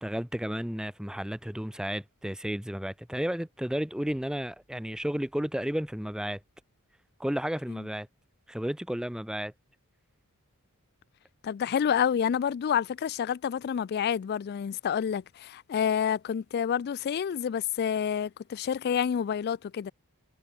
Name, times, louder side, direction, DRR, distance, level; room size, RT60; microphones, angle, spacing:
voice 1, 0.0-6.4 7.2-8.1 8.5-9.5, equal, 5° right, 0.7 m, -32 dB
voice 2, 11.4-19.9, left 8 dB, 45° left, 0.3 m, -28 dB
head